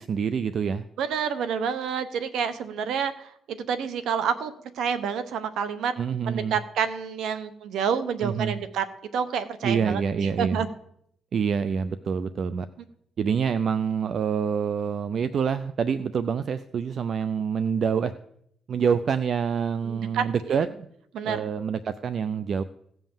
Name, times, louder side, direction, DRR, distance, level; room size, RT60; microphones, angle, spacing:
voice 1, 0.0-0.8 6.0-6.6 8.2-8.6 9.6-10.6 11.3-12.7 13.2-18.1 18.7-20.7 21.2-22.6, right 6 dB, 55° right, 13 dB, 0.5 m, -26 dB
voice 2, 1.0-5.9 6.3-8.8 9.1-10.7 19.8-20.6 21.1-21.5, right 7 dB, 80° right, 12 dB, 0.9 m, -28 dB
16.5 x 5.6 x 7.3 m, 0.72 s
cardioid pair, 90°, 0 cm